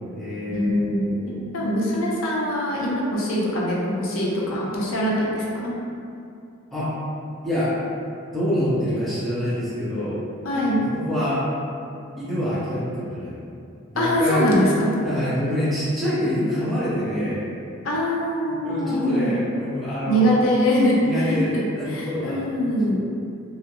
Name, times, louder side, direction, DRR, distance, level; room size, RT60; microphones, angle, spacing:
voice 1, 0.0-1.4 6.7-7.0 7.4-7.8 8.3-10.2 10.8-11.5 12.2-13.4 13.9-14.4 15.0-17.5 18.4-20.3 21.0-22.4 22.9-23.0, equal, ahead, -13 dB, 0.7 m, -26 dB
voice 2, 0.5-1.1 1.5-5.7 10.4-10.8 14.0-14.9 17.8-19.3 20.1-23.0, equal, 70° left, -4 dB, 0.5 m, -23 dB
2.3 x 2.1 x 2.9 m, 2.5 s
head